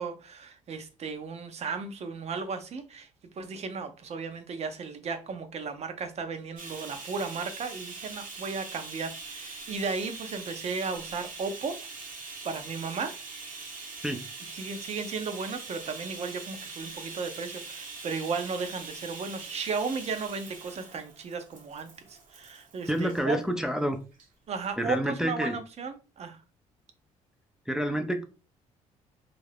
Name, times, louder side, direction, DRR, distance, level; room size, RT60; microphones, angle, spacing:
voice 1, 0.0-3.1 3.4-11.9 12.4-13.2 14.5-23.4 24.5-26.4, right 4 dB, 50° right, 0.6 m, -35 dB
Bathtub (filling or washing), 6.6-23.2 24.1-24.3 24.6-24.7, right 4 dB, 65° right, 1.0 m, -43 dB
voice 2, 22.9-24.0 24.8-25.6 27.7-28.2, equal, 5° right, 0.4 m, -28 dB
2.4 x 2.0 x 3.2 m
supercardioid pair, 70°, 14 cm